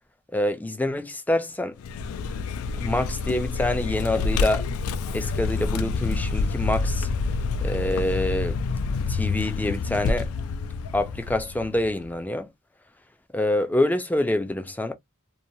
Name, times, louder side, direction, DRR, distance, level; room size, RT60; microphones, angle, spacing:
voice 1, 0.3-1.8 2.8-4.6 5.1-7.1 7.6-8.6 9.1-10.3 10.9-12.5 13.3-14.9, left 1 dB, 10° left, 0.3 m, -26 dB
Vehicle, 1.8-12.1, left 4 dB, 90° left, 0.3 m, -27 dB
2.7 x 2.2 x 2.6 m
head